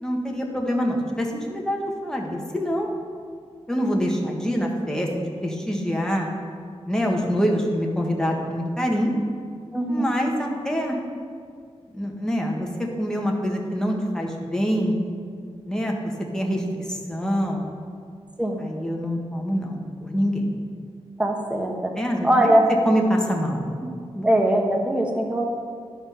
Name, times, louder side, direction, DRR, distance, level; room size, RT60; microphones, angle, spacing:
voice 1, 0.0-2.9 3.7-6.3 6.9-9.1 9.9-11.0 11.9-12.7 13.0-15.0 15.7-17.7 18.6-20.6 21.9-22.5 22.8-23.6 24.0-24.3, equal, 5° left, 0 dB, 1.3 m, -25 dB
voice 2, 7.0-7.5 9.7-10.1 18.4-18.7 21.2-21.9 22.2-22.6 23.8-23.9 24.2-25.4, right 1 dB, 10° right, 0 dB, 1.1 m, -22 dB
11.0 x 4.4 x 5.6 m, 2.1 s
wide cardioid pair, 90°, 11 cm